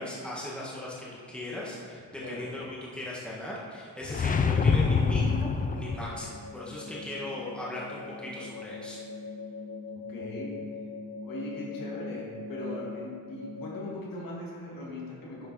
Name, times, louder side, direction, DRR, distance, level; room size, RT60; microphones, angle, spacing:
voice 1, 0.0-2.7 2.9-9.0, left 1 dB, 5° left, -6 dB, 1.7 m, -38 dB
sound 1, 4.0-6.3, left 5 dB, 25° left, 0.4 m, -25 dB
sound 2, 5.7-13.8, left 3 dB, 70° right, 1.3 m, -41 dB
voice 2, 10.1-10.6 11.2-15.5, left 2 dB, 65° left, -4 dB, 2.4 m, -39 dB
10.5 x 6.7 x 4.8 m, 2.2 s
cardioid pair, 155°, 37 cm